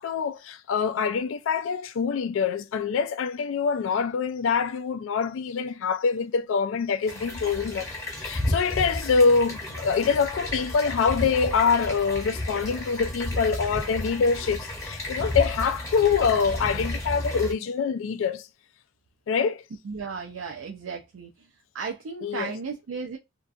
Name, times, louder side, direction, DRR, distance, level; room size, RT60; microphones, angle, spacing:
voice 1, 0.0-7.9 8.2-18.5 19.3-19.6 22.2-22.5, left 5 dB, 70° left, 0.3 m, -25 dB
sound 1, 7.1-17.5, left 1 dB, 15° left, 0.8 m, -32 dB
voice 2, 19.8-21.5 21.7-23.2, right 5 dB, 80° right, 0.4 m, -35 dB
2.6 x 2.4 x 2.3 m
head